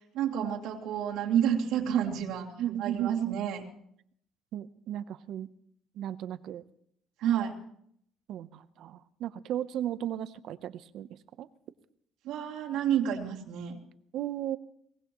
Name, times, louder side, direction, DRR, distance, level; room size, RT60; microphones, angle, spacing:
voice 1, 0.1-2.5 2.8-3.6 7.2-7.6 12.2-13.8, right 9 dB, 90° right, -2 dB, 2.6 m, -29 dB
voice 2, 2.6-3.4 4.5-5.5 5.9-6.6 8.3-11.5 14.1-14.6, right 11 dB, 65° right, 14 dB, 0.8 m, -35 dB
23.0 x 19.0 x 3.1 m, 0.70 s
cardioid pair, 135°, 0 cm